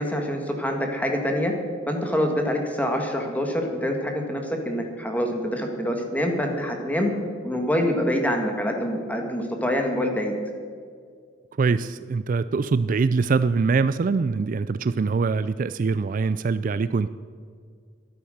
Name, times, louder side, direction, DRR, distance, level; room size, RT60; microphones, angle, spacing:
voice 1, 0.0-1.5 1.9-7.1 7.4-10.3, equal, 10° left, 3 dB, 1.9 m, -25 dB
voice 2, 11.6-17.1, right 4 dB, 45° right, 14 dB, 0.3 m, -23 dB
13.0 x 11.5 x 6.6 m, 2.1 s
head